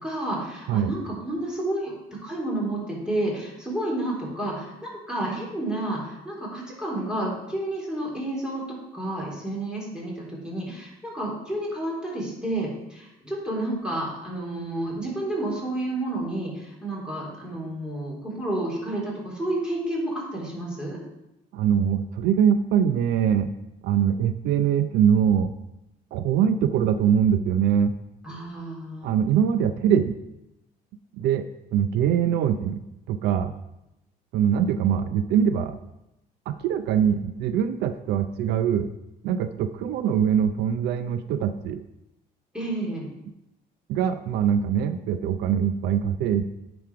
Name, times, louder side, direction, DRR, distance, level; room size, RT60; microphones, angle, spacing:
voice 1, 0.0-1.9 2.2-21.0 28.2-29.1 42.5-43.0, right 1 dB, 5° right, -4 dB, 3.4 m, -30 dB
voice 2, 21.5-23.5 23.8-25.5 26.1-27.9 29.0-30.1 31.2-31.5 31.7-32.8 33.1-33.5 34.3-35.8 36.5-38.9 39.2-41.8 43.9-46.4, right 8 dB, 80° right, 10 dB, 0.5 m, -23 dB
9.2 x 5.2 x 4.8 m, 0.90 s
cardioid pair, 110°, 17 cm